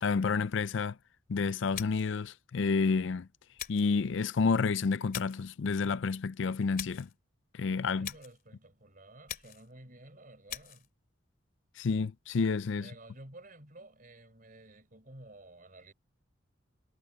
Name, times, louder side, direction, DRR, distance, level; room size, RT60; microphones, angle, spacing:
voice 1, 0.0-1.0 1.3-3.3 3.7-7.1 7.5-8.1 11.8-12.9, left 4 dB, 65° left, 0.4 m, -30 dB
sound 1, 1.7-2.2 3.6-4.0 5.1-5.5 6.8-7.1 8.0-8.4 9.3-9.7 10.5-10.9, left 10 dB, 45° left, 2.7 m, -42 dB
voice 2, 7.9-10.9 12.8-15.9, right 1 dB, 45° right, 5.1 m, -53 dB
head